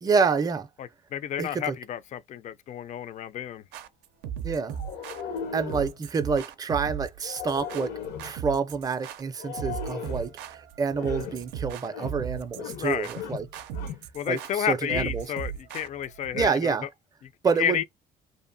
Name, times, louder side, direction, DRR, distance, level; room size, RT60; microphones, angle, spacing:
voice 1, 0.0-0.7 1.4-1.8 4.4-4.7 5.5-7.9 8.2-13.6 14.3-15.3 16.3-16.9 17.4-17.8, right 5 dB, 20° right, 0.4 m, -28 dB
voice 2, 0.8-3.6 12.7-13.1 14.1-16.9 17.2-17.3 17.6-17.8, left 10 dB, 45° left, 0.4 m, -31 dB
sound 1, 3.7-16.5, right 9 dB, 85° right, 0.4 m, -37 dB
sound 2, 4.7-6.0 7.2-8.4 9.4-10.3 10.9-11.4 11.9-12.2 12.5-12.9 13.1-14.1, left 7 dB, 80° left, 0.8 m, -37 dB
2.6 x 2.4 x 2.6 m
cardioid pair, 110°, 17 cm